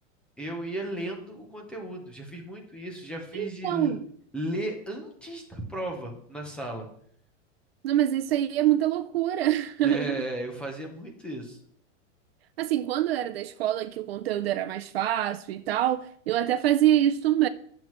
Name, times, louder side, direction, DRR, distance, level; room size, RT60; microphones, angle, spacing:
voice 1, 0.4-4.0 4.3-6.9 9.8-11.6, right 1 dB, 5° left, 0.6 m, -35 dB
voice 2, 3.3-4.0 7.8-10.2 12.6-17.5, right 12 dB, 55° right, 0.4 m, -25 dB
10.5 x 7.3 x 3.1 m
supercardioid pair, 170°, 38 cm